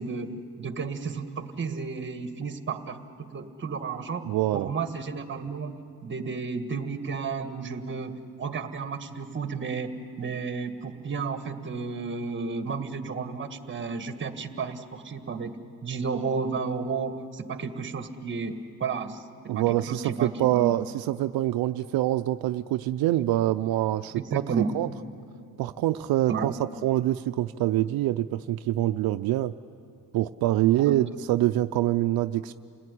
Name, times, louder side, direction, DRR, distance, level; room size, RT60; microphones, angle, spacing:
voice 1, 0.0-4.3 4.5-5.7 6.0-15.5 15.8-18.5 18.8-19.2 19.5-20.7 24.1-24.7 26.3-26.6 30.8-30.9, right 5 dB, 30° right, 9 dB, 1.7 m, -32 dB
voice 2, 4.2-4.7 19.5-24.2 24.7-24.9 25.6-29.5 30.1-32.5, right 14 dB, 75° right, 9 dB, 0.6 m, -25 dB
28.0 x 18.5 x 10.0 m, 2.5 s
cardioid pair, 120°, 36 cm